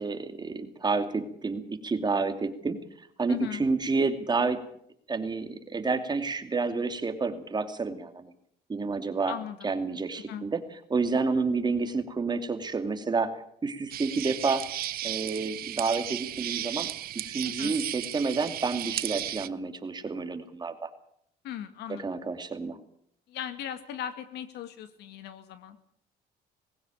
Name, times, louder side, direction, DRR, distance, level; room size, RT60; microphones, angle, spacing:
voice 1, 0.0-2.8 3.2-4.6 5.1-8.3 8.7-9.3 9.6-10.6 10.9-13.3 13.6-14.6 15.0-16.9 17.3-20.9 21.9-22.8, right 4 dB, 25° right, 8 dB, 2.5 m, -29 dB
voice 2, 3.3-3.6 9.3-9.7 10.3-10.5 17.4-17.8 21.4-22.1 23.3-25.8, left 10 dB, 80° left, 10 dB, 2.1 m, -38 dB
sound 1, 13.9-19.5, right 13 dB, 65° right, 0.8 m, -34 dB
20.0 x 16.0 x 9.0 m, 0.70 s
cardioid pair, 110°, 17 cm